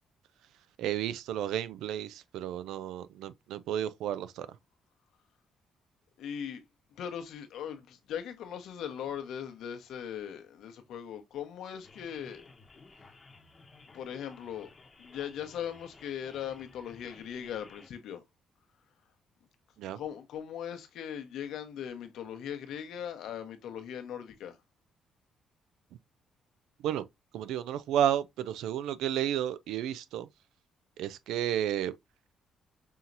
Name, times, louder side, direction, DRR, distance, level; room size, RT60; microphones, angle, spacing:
voice 1, 0.8-4.5 19.8-20.0 26.8-27.1 27.3-30.3 31.0-31.9, right 10 dB, 85° right, 0.4 m, -32 dB
voice 2, 6.2-6.6 7.0-12.4 13.9-14.7 15.0-18.2 19.9-24.6, left 9 dB, 80° left, 0.9 m, -39 dB
sound 1, 11.8-17.9, left 3 dB, 30° left, 0.9 m, -56 dB
5.5 x 2.9 x 2.5 m
cardioid pair, 90°, 0 cm